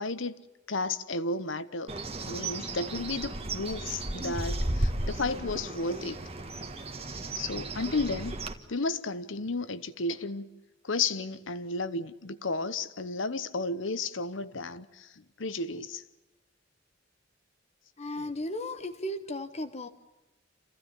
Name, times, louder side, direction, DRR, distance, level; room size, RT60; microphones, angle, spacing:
voice 1, 0.0-1.9 2.3-6.2 7.4-8.4 8.7-10.5 10.8-16.0, left 3 dB, 75° left, 1.0 m, -33 dB
Bird, 1.9-8.5, right 2 dB, 30° right, 1.5 m, -34 dB
voice 2, 18.0-19.9, left 1 dB, 35° left, 1.3 m, -35 dB
28.0 x 15.5 x 10.0 m
head